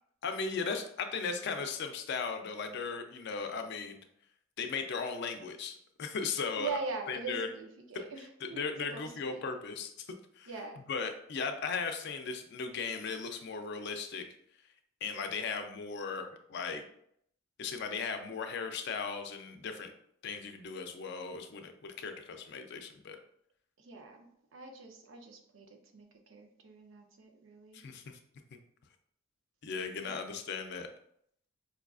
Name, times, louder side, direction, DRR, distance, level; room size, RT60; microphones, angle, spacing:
voice 1, 0.2-4.0 4.6-6.7 7.1-7.5 8.4-10.1 10.3-10.5 10.9-14.3 15.0-16.8 17.6-19.9 20.2-23.2 27.7-28.2 28.5-28.6 29.6-30.9, left 5 dB, 60° left, 6 dB, 0.4 m, -37 dB
voice 2, 6.6-8.6 8.9-9.4 10.5-10.8 23.8-27.8 30.0-30.2, right 4 dB, 75° right, 3 dB, 0.6 m, -42 dB
4.7 x 2.4 x 2.3 m, 0.69 s
head